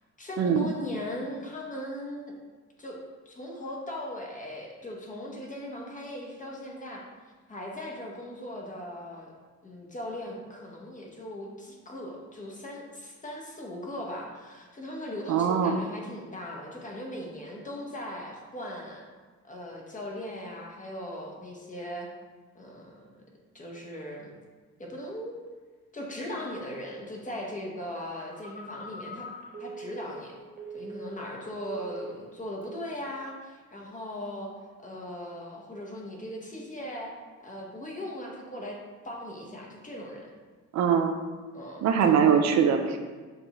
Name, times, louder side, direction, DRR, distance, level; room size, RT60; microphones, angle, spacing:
voice 1, 0.2-2.3 2.8-3.0 3.2-7.0 7.5-9.3 9.6-19.0 19.4-22.1 22.5-23.2 23.5-24.3 24.8-25.4 25.9-29.3 29.6-30.3 30.7-34.5 34.8-37.1 37.4-38.8 39.0-40.3 41.5-42.2, left 1 dB, 25° left, -1 dB, 1.0 m, -39 dB
voice 2, 15.3-15.7 40.7-41.1 41.8-43.0, right 7 dB, 65° right, 5 dB, 0.5 m, -22 dB
Telephone, 28.3-31.3 31.6-32.3 32.6-32.9, right 2 dB, 30° right, 1.3 m, -42 dB
6.5 x 2.6 x 3.0 m, 1.4 s
cardioid pair, 90°, 30 cm